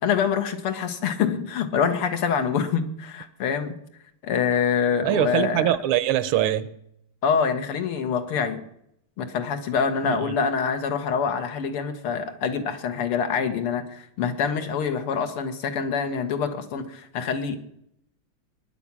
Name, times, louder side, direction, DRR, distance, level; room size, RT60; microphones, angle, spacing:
voice 1, 0.0-3.7 4.2-5.7 7.2-8.6 9.2-17.6, left 6 dB, 85° left, 2.3 m, -25 dB
voice 2, 5.0-6.7 10.0-10.4, right 13 dB, 80° right, 1.6 m, -23 dB
21.0 x 9.7 x 6.0 m
omnidirectional pair, 2.4 m